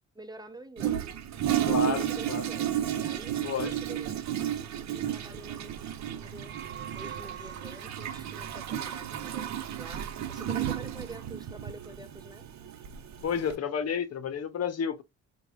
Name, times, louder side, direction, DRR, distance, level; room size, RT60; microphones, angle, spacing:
voice 1, 0.1-1.1 1.6-4.2 4.9-5.8 6.1-6.6 6.9-12.5, right 2 dB, 15° right, 0.7 m, -47 dB
Toilet flush, 0.8-13.6, right 10 dB, 65° right, 0.8 m, -33 dB
voice 2, 1.6-2.4 3.4-3.7 13.2-15.0, left 7 dB, 55° left, 0.8 m, -31 dB
sound 1, 6.2-8.1, right 10 dB, 40° right, 0.4 m, -44 dB
4.7 x 2.3 x 3.4 m
cardioid pair, 90°, 30 cm